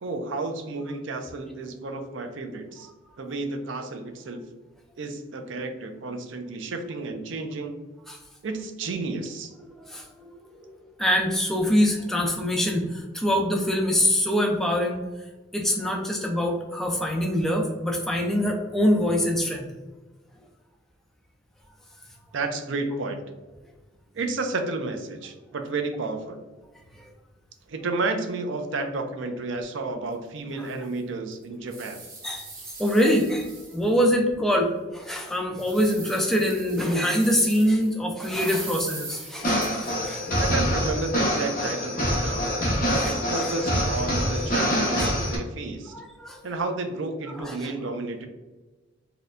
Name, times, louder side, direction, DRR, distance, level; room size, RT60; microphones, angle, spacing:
voice 1, 0.0-2.9 3.2-4.4 5.0-7.8 8.4-9.5 22.3-23.2 24.1-26.4 27.7-32.0 40.4-42.5 42.9-45.9 46.4-48.3, right 3 dB, 65° right, 6 dB, 0.4 m, -31 dB
voice 2, 9.8-10.7 11.0-15.0 15.5-19.7 30.6-30.7 32.2-32.5 32.8-40.2 43.0-43.5 45.0-45.2 45.9-46.4 47.4-47.7, equal, ahead, 0 dB, 0.4 m, -24 dB
sound 1, 30.1-30.2 30.7-30.8 31.3-34.1 34.6-34.7 35.2-37.9 38.2-40.1, right 3 dB, 45° right, 1.0 m, -41 dB
sound 2, 39.4-45.4, equal, 40° left, 0.9 m, -25 dB
4.2 x 2.2 x 2.5 m, 1.2 s
head